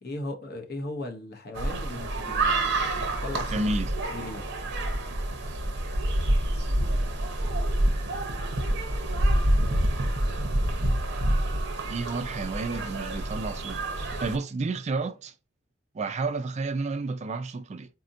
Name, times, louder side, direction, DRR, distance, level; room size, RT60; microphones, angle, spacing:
voice 1, 0.0-3.6 4.1-4.4, left 2 dB, 50° left, 0.8 m, -37 dB
sound 1, 1.5-14.4, right 1 dB, 60° right, 0.8 m, -27 dB
voice 2, 3.5-3.9 11.9-15.3 15.9-17.9, right 3 dB, 35° right, 0.3 m, -31 dB
4.1 x 2.7 x 2.5 m
head